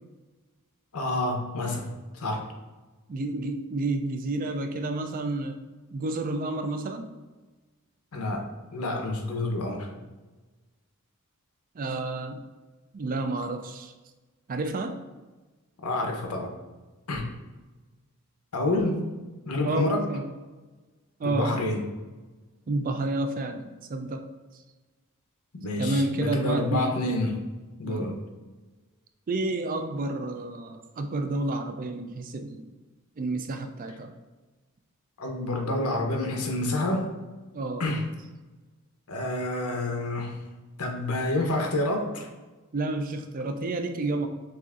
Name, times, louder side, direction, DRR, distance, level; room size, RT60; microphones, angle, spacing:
voice 1, 0.9-2.4 8.1-8.5 8.7-9.9 15.8-16.5 17.1-17.3 18.5-19.1 19.5-20.1 21.2-21.9 25.6-27.5 27.8-28.2 35.2-37.1 37.8-38.1 39.1-40.5 40.8-42.3, left 2 dB, 80° left, 2 dB, 0.8 m, -28 dB
voice 2, 3.1-5.6 5.9-7.1 11.8-12.4 12.9-13.9 14.5-15.0 19.6-20.2 21.2-21.5 22.7-24.3 25.8-27.0 27.8-28.1 29.3-32.7 33.2-34.1 37.5-37.9 42.7-44.3, right 2 dB, 40° right, 7 dB, 0.3 m, -30 dB
6.7 x 2.5 x 2.4 m, 1.2 s
head